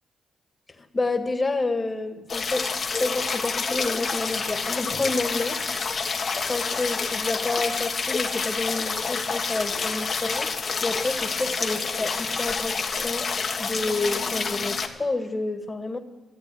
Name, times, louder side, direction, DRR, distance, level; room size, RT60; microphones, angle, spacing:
voice 1, 0.7-5.6 6.5-10.5 10.8-13.3 13.6-16.0, left 3 dB, 30° left, 6 dB, 1.8 m, -29 dB
sound 1, 2.3-14.9, left 5 dB, 55° left, 1.6 m, -28 dB
14.0 x 8.4 x 9.5 m, 1.2 s
cardioid pair, 65°, 0 cm